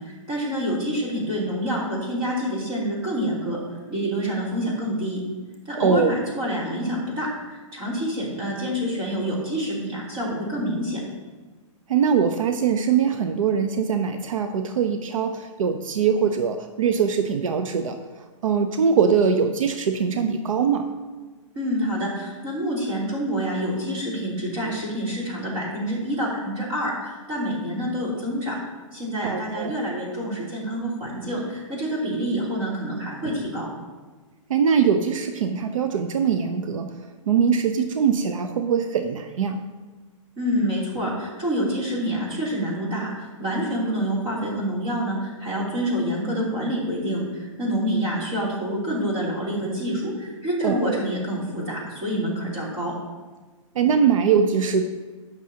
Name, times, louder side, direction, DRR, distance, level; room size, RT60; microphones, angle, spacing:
voice 1, 0.0-3.6 3.9-5.2 5.6-11.0 21.5-28.5 28.9-33.7 40.4-52.9, equal, 25° right, -6 dB, 3.3 m, -27 dB
voice 2, 5.7-6.1 11.9-18.0 18.4-20.9 29.2-29.7 34.5-37.0 37.3-39.6 50.6-51.0 53.7-54.8, right 6 dB, 80° right, 7 dB, 0.7 m, -22 dB
17.0 x 6.2 x 2.9 m, 1.3 s
hypercardioid pair, 165°, 17 cm